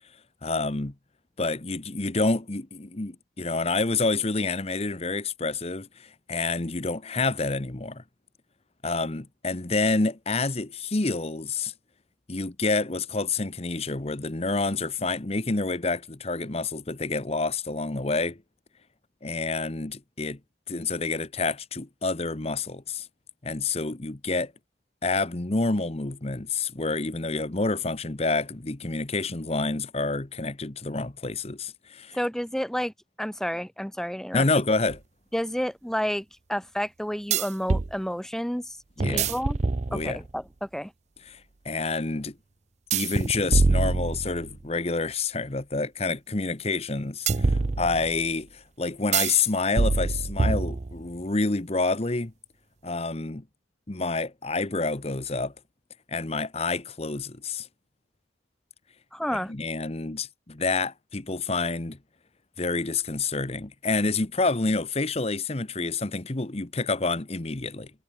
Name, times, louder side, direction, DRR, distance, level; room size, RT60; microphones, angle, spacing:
voice 1, 0.4-0.9 1.4-8.0 8.8-11.7 12.3-18.4 19.2-20.4 20.7-23.1 23.4-24.5 25.0-32.2 34.3-35.0 39.0-39.3 39.9-40.2 41.3-42.3 42.9-52.3 52.8-53.4 53.9-55.5 56.1-57.7 59.5-62.0 62.6-67.9, left 3 dB, 35° left, 1.1 m, -28 dB
voice 2, 32.1-32.9 33.2-34.4 35.3-39.6 39.9-40.9 59.1-59.5, equal, 5° left, 1.1 m, -30 dB
sound 1, 34.9-35.0 37.3-37.9 39.0-40.3 42.9-44.6 47.3-48.3 49.1-49.4 49.8-51.1, right 3 dB, 40° right, 0.5 m, -25 dB
head